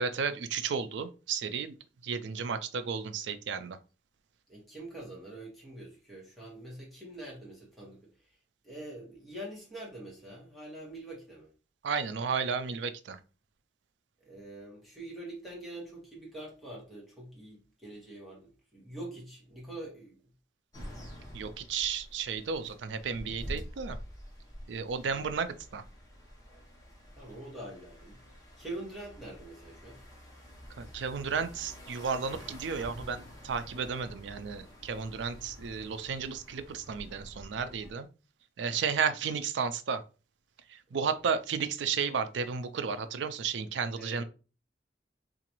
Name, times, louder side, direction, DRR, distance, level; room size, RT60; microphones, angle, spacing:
voice 1, 0.0-1.8 2.0-3.8 11.8-13.2 21.3-24.0 24.7-25.8 30.8-38.1 38.6-40.0 40.7-44.2, right 6 dB, 80° right, 0.4 m, -33 dB
voice 2, 4.5-8.4 8.6-11.5 14.2-20.2 25.1-25.3 27.2-28.2 28.6-30.0 43.9-44.2, right 1 dB, ahead, 1.3 m, -45 dB
sound 1, 20.7-37.9, equal, 20° left, 0.9 m, -48 dB
3.8 x 2.5 x 2.9 m
head